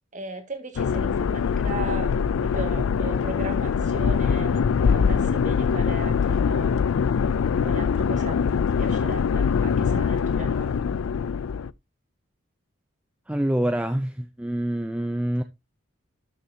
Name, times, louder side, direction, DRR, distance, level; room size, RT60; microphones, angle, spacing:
voice 1, 0.1-2.1 2.4-6.8 7.6-8.4 8.7-10.7, right 2 dB, 35° right, 1.8 m, -37 dB
sound 1, 0.8-11.7, left 6 dB, 85° left, 0.4 m, -23 dB
voice 2, 13.3-15.4, right 1 dB, 5° right, 0.4 m, -26 dB
12.5 x 6.3 x 2.7 m
head